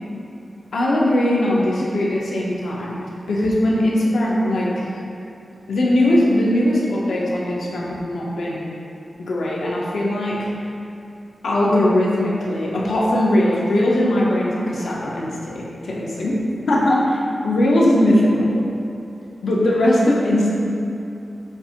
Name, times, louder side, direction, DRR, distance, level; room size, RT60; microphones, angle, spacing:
voice 1, 0.7-3.0 3.3-4.8 5.7-8.8 9.2-10.5 11.4-16.4 16.7-17.2 17.4-18.6 19.4-20.5, left 1 dB, 90° left, -4 dB, 1.1 m, -19 dB
7.9 x 2.7 x 5.2 m, 2.7 s
wide cardioid pair, 80°, 0 cm